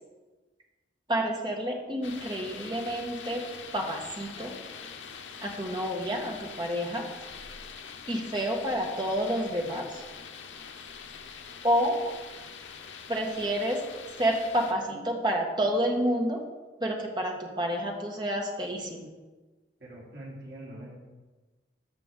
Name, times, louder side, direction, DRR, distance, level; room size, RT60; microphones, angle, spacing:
voice 1, 1.1-3.4 3.7-4.5 5.4-7.1 8.1-10.0 11.6-12.0 13.1-13.8 14.2-16.4 16.8-19.1, equal, 25° right, 1 dB, 1.4 m, -29 dB
sound 1, 2.0-14.7, left 6 dB, 85° left, 0.8 m, -44 dB
voice 2, 19.8-21.0, right 1 dB, 60° right, -5 dB, 3.5 m, -43 dB
14.5 x 6.0 x 3.8 m, 1.3 s
head